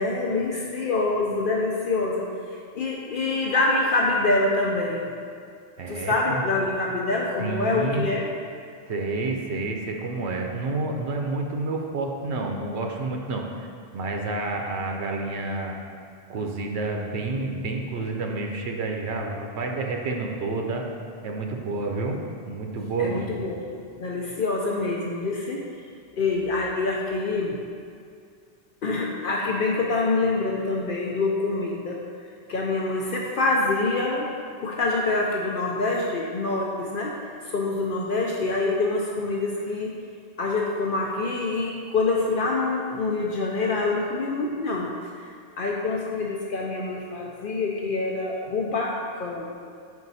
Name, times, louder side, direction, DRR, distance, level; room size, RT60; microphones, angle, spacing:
voice 1, 0.0-2.2 2.7-5.1 5.9-8.3 23.0-23.6 23.9-25.6 26.2-27.6 28.8-32.0 32.5-34.3 34.6-37.2 37.5-40.0 40.4-44.9 45.6-49.4, left 3 dB, 60° left, -2 dB, 0.7 m, -25 dB
voice 2, 5.8-6.4 7.4-8.1 8.9-13.7 13.9-15.8 16.3-20.9 21.2-22.2 22.5-23.3, right 3 dB, 85° right, 2 dB, 0.9 m, -29 dB
5.2 x 4.6 x 4.0 m, 2.3 s
omnidirectional pair, 1.1 m